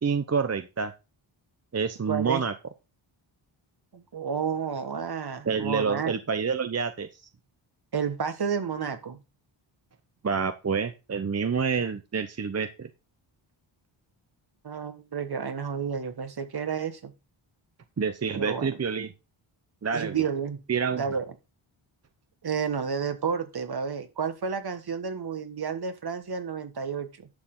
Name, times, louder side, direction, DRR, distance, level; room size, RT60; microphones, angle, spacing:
voice 1, 0.0-0.9 1.7-2.5 5.5-7.2 10.2-12.9 18.0-19.1 19.8-20.2 20.7-21.0, right 5 dB, 30° right, 9 dB, 0.8 m, -28 dB
voice 2, 2.1-2.4 3.9-6.1 7.9-9.2 14.6-17.1 18.3-18.7 19.9-20.6 20.9-21.3 22.4-27.3, right 6 dB, 50° right, 9 dB, 1.6 m, -31 dB
11.5 x 6.8 x 3.9 m, 0.27 s
wide cardioid pair, 90°, 48 cm